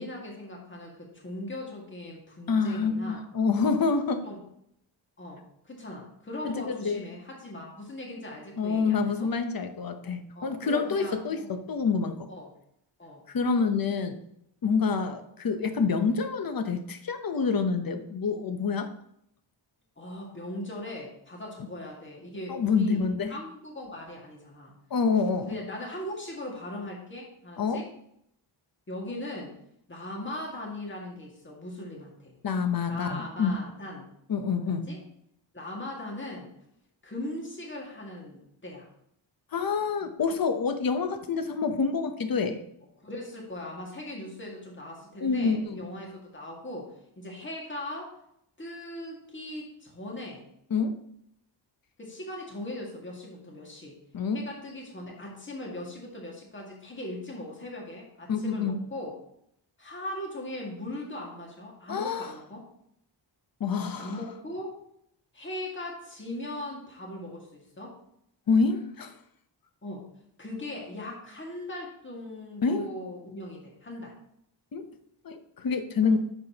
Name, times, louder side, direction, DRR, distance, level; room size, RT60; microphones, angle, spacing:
voice 1, 0.0-3.2 4.2-4.4 5.2-9.3 10.3-11.5 12.3-12.5 13.0-13.2 20.0-23.0 23.3-24.7 25.4-27.9 28.9-29.5 29.9-32.3 32.9-34.1 34.7-35.0 35.5-36.5 37.0-38.9 43.0-48.1 48.6-50.4 52.0-54.0 54.3-59.1 59.8-62.6 64.0-64.7 65.3-67.9 69.8-70.0 70.4-74.1 76.0-76.2, left 1 dB, 25° left, -2 dB, 2.0 m, -39 dB
voice 2, 2.5-4.2 6.4-7.0 8.6-12.3 13.3-14.2 14.6-18.9 22.5-23.3 24.9-25.5 27.6-27.8 32.4-33.5 34.3-34.9 39.5-42.6 45.2-45.9 50.7-50.9 54.1-54.4 58.3-58.8 61.9-62.3 63.6-64.2 68.5-69.2 72.6-72.8 74.7-74.8 75.2-76.2, left 5 dB, 50° left, 8 dB, 0.9 m, -27 dB
9.3 x 6.9 x 2.9 m, 0.74 s
wide cardioid pair, 125°, 46 cm